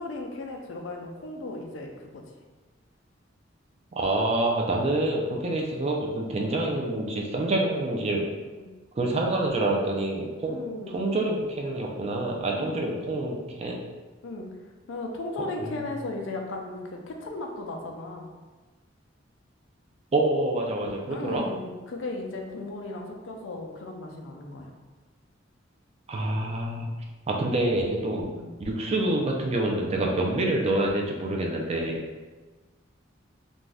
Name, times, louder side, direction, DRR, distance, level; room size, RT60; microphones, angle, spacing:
voice 1, 0.0-2.2 8.6-8.7 10.4-11.0 12.6-13.0 14.2-14.5 14.9-18.3 21.1-24.7 28.3-28.5, left 2 dB, 85° left, 2 dB, 0.4 m, -36 dB
voice 2, 4.0-8.3 9.0-10.6 10.9-13.8 20.1-21.5 26.1-26.9 27.3-28.3 28.6-32.0, right 2 dB, 35° right, 0 dB, 0.4 m, -27 dB
2.6 x 2.2 x 3.2 m, 1.3 s
head